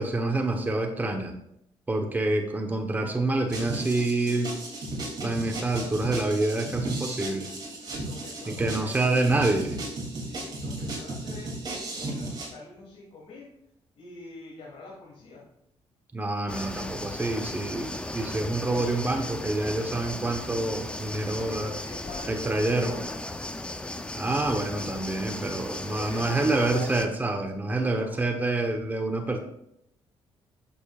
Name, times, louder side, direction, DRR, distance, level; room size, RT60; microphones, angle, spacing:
voice 1, 0.0-1.3 1.9-4.6 5.2-7.5 8.5-9.8 16.1-21.7 22.3-22.9 24.1-29.4, right 2 dB, 15° right, 3 dB, 1.0 m, -27 dB
sound 1, 3.5-12.5, right 2 dB, 40° right, 2.9 m, -35 dB
voice 2, 8.0-8.9 10.2-11.6 11.9-13.5 14.0-15.4 21.1-23.3 25.7-27.0 27.8-28.6, left 3 dB, 75° left, -6 dB, 3.0 m, -44 dB
sound 2, 16.5-27.1, left 1 dB, 10° left, 0.6 m, -36 dB
10.5 x 6.7 x 2.4 m, 0.78 s
cardioid pair, 95°, 11 cm